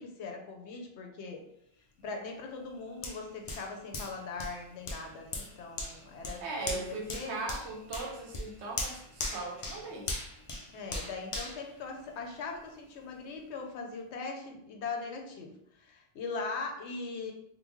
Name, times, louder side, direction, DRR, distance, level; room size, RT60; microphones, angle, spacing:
voice 1, 0.0-1.4 2.0-6.4 6.7-7.4 10.7-17.3, left 4 dB, 75° left, 2 dB, 0.9 m, -40 dB
Hands, 3.0-12.5 13.0-13.1, left 2 dB, 50° left, 0.3 m, -40 dB
voice 2, 6.4-10.1, right 3 dB, 70° right, 1 dB, 1.0 m, -39 dB
3.7 x 2.2 x 3.0 m, 0.74 s
omnidirectional pair, 1.2 m